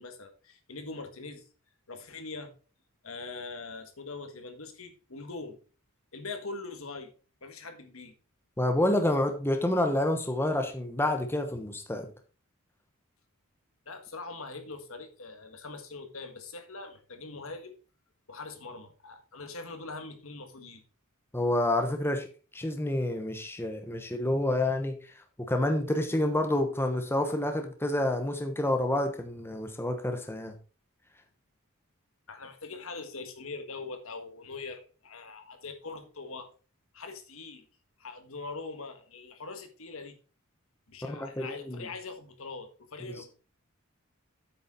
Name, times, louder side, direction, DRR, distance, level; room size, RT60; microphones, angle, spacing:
voice 1, 0.0-1.4 1.9-2.5 3.0-5.6 6.1-7.1 7.4-8.1 13.8-17.8 18.3-20.8 32.3-36.5 36.9-37.6 38.0-40.2 40.9-43.3, left 3 dB, 70° left, 1.6 m, -42 dB
voice 2, 8.6-12.1 21.3-22.3 22.5-25.0 25.4-30.5 41.0-41.9, left 1 dB, 10° left, 1.0 m, -28 dB
8.5 x 6.3 x 4.3 m
head